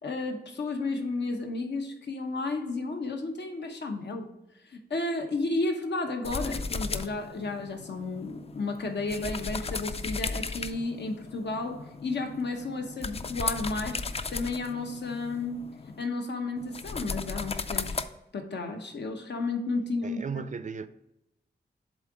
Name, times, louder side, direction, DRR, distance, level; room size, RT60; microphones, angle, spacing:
voice 1, 0.0-4.3 4.7-15.7 16.0-18.0 18.3-20.4, left 3 dB, 85° left, 0.9 m, -32 dB
sound 1, 6.2-16.1 16.6-18.1, left 4 dB, 35° left, 0.4 m, -36 dB
voice 2, 20.0-20.9, right 5 dB, 45° right, 0.4 m, -35 dB
7.4 x 3.7 x 4.9 m
wide cardioid pair, 115°, 17 cm